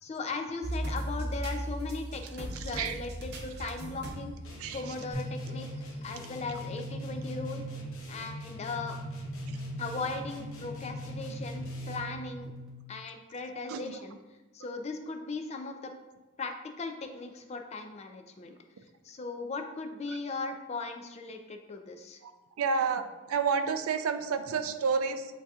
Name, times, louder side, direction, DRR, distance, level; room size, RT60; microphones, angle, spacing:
voice 1, 0.0-4.4 4.7-5.7 6.0-7.8 8.1-9.0 9.8-12.5 12.9-14.2 14.5-15.9 16.4-18.5 19.0-22.2, left 3 dB, 30° left, 5 dB, 0.4 m, -38 dB
sound 1, 0.6-5.3 5.8-5.9 6.8-6.9, right 1 dB, 50° right, 0.7 m, -37 dB
sound 2, 4.4-12.2, left 1 dB, 70° left, 0.9 m, -43 dB
sound 3, 5.1-12.7, right 1 dB, 5° right, 1.2 m, -41 dB
voice 2, 22.6-23.0 23.3-25.3, right 5 dB, 90° right, 8 dB, 0.4 m, -29 dB
8.0 x 2.7 x 2.4 m, 1.2 s
head